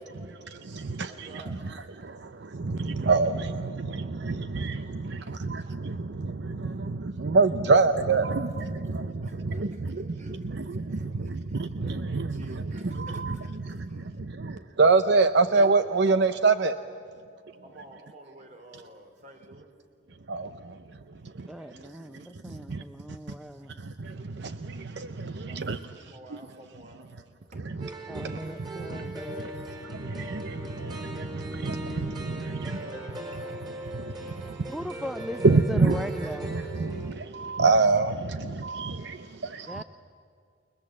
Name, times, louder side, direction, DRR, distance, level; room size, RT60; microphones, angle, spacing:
voice 1, 0.0-10.0 10.5-16.8 20.3-23.2 23.7-26.4 27.6-33.6 33.9-34.7 35.4-39.8, right 3 dB, 65° right, 0.7 m, -28 dB
voice 2, 1.1-1.8 9.2-14.2 15.2-15.3 17.6-19.7 25.3-27.1 27.5-27.6 32.4-35.0, right 1 dB, 45° right, 3.3 m, -51 dB
voice 3, 21.5-23.8 28.1-29.5 34.7-36.6 39.7-39.8, equal, ahead, 0.5 m, -38 dB
sound 1, 27.8-37.1, right 1 dB, 25° right, 4.6 m, -40 dB
29.5 x 21.0 x 7.6 m
head